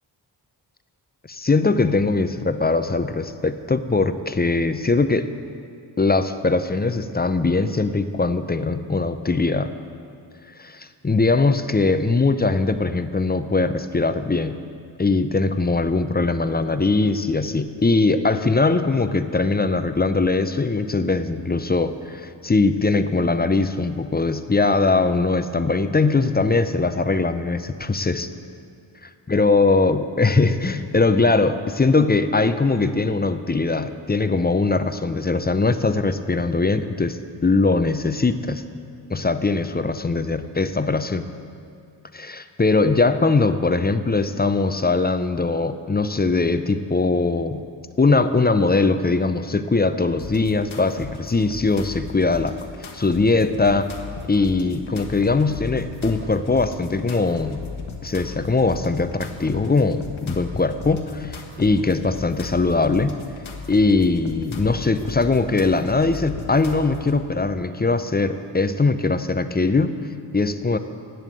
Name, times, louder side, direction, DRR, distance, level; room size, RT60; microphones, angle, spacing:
voice 1, 1.3-5.3 6.0-9.7 10.6-14.6 15.0-28.3 29.3-37.2 37.4-38.6 39.1-41.3 42.1-47.6 48.0-52.6 52.9-53.9 54.3-57.6 58.0-63.2 63.7-69.9 70.3-70.8, left 3 dB, 20° left, 11 dB, 0.5 m, -21 dB
sound 1, 50.2-67.2, left 4 dB, 75° left, 1.3 m, -36 dB
11.0 x 7.1 x 7.8 m, 2.3 s
cardioid pair, 45°, 48 cm